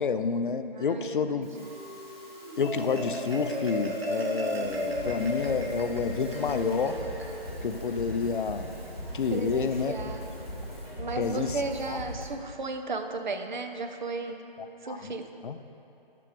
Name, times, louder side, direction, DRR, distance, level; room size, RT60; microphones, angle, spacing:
voice 1, 0.0-1.5 2.6-7.0 7.6-8.7 9.1-9.9 11.2-11.6 11.9-12.0 14.9-15.1 15.4-15.6, left 5 dB, 60° left, 10 dB, 0.4 m, -29 dB
voice 2, 0.7-1.7 9.3-10.3 10.6-10.7 11.0-14.4 14.8-15.3, right 3 dB, 50° right, 6 dB, 0.5 m, -35 dB
Musical instrument, 1.4-10.9, equal, 25° right, 1.1 m, -51 dB
Marimba xylophone, 2.3-8.9, equal, 85° right, 1.4 m, -35 dB
sound 1, 4.6-12.2, equal, 5° right, 0.6 m, -40 dB
7.0 x 5.8 x 4.9 m, 2.8 s
figure-of-eight pair, 160°, 29 cm